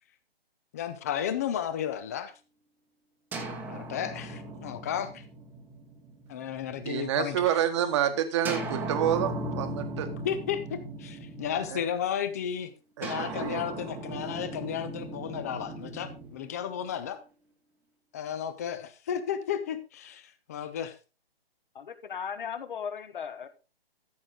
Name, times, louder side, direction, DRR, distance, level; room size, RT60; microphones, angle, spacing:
voice 1, 0.7-2.3 3.7-5.2 6.3-7.5 10.2-12.7 13.0-17.2 18.1-20.9, left 9 dB, 15° left, 12 dB, 0.5 m, -33 dB
sound 1, 3.3-7.1 8.4-12.0 13.0-17.2, right 2 dB, 5° right, 1.0 m, -38 dB
voice 2, 6.8-10.1 11.7-11.8 13.0-13.6, right 10 dB, 30° right, 9 dB, 1.2 m, -28 dB
voice 3, 21.7-23.5, left 7 dB, 55° left, 11 dB, 1.4 m, -37 dB
14.0 x 6.3 x 3.7 m, 0.32 s
hypercardioid pair, 150°, 31 cm